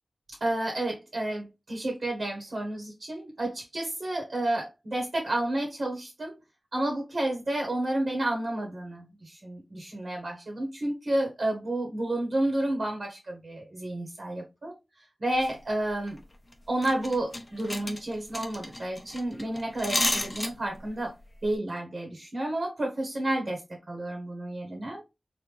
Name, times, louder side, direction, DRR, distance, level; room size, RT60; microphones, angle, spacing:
voice 1, 0.4-6.3 6.7-16.2 16.7-21.1 21.4-23.6 23.9-25.0, right 1 dB, 65° right, 1 dB, 1.2 m, -31 dB
sound 1, 15.3-15.5 15.9-16.2 16.5-16.6 16.8-20.9 21.2-21.5, left 1 dB, 30° left, 0.7 m, -32 dB
3.2 x 2.5 x 3.4 m, 0.24 s
wide cardioid pair, 60°, 0 cm